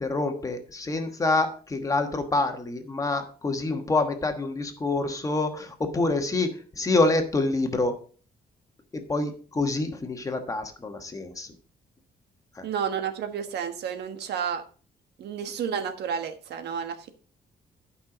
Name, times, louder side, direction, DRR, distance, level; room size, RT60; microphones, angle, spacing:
voice 1, 0.0-8.0 8.9-11.5 12.5-12.7, left 2 dB, 20° left, 5 dB, 1.2 m, -27 dB
voice 2, 12.6-14.6 15.2-17.1, right 7 dB, 85° right, 8 dB, 1.3 m, -31 dB
11.5 x 5.6 x 5.0 m, 0.41 s
cardioid pair, 175°, 17 cm